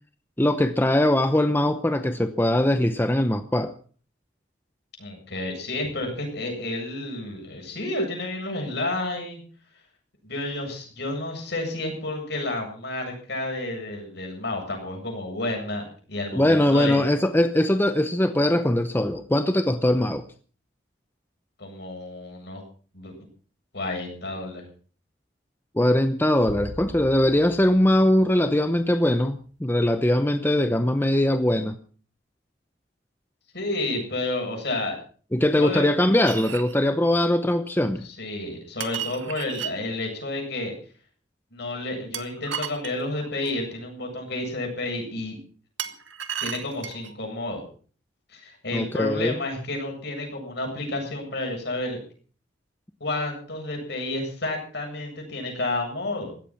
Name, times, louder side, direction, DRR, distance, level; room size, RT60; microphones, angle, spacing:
voice 1, 0.4-3.7 16.3-20.2 25.7-31.8 35.3-38.0 48.7-49.4, left 1 dB, 10° left, 9 dB, 0.8 m, -21 dB
voice 2, 5.0-9.4 10.2-17.1 21.6-22.6 22.9-23.3 23.7-24.6 33.5-35.0 35.5-35.9 38.0-40.7 41.5-45.4 46.4-47.7 48.3-52.0 53.0-56.3, left 2 dB, 60° left, 2 dB, 7.8 m, -31 dB
sound 1, 26.5-29.0, equal, 60° right, 3.7 m, -41 dB
sound 2, 36.2-36.8 38.8-39.7 42.1-43.6 45.8-47.1, right 8 dB, 85° right, 1.7 m, -34 dB
16.5 x 14.0 x 5.9 m, 0.42 s
head